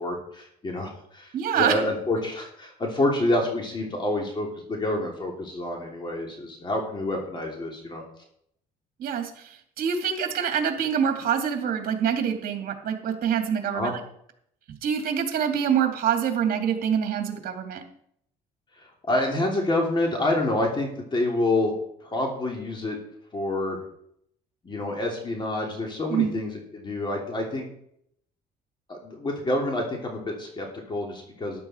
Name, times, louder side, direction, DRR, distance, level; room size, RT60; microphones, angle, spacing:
voice 1, 0.0-8.0 13.7-13.9 19.0-21.7 22.0-23.0 23.3-23.8 24.6-27.7 28.9-31.6, left 1 dB, 30° left, 0 dB, 3.2 m, -27 dB
voice 2, 1.3-1.8 9.0-14.0 14.7-17.8 26.1-26.4, right 8 dB, 60° right, 5 dB, 2.4 m, -26 dB
13.0 x 11.0 x 4.5 m, 0.69 s
cardioid pair, 110°, 17 cm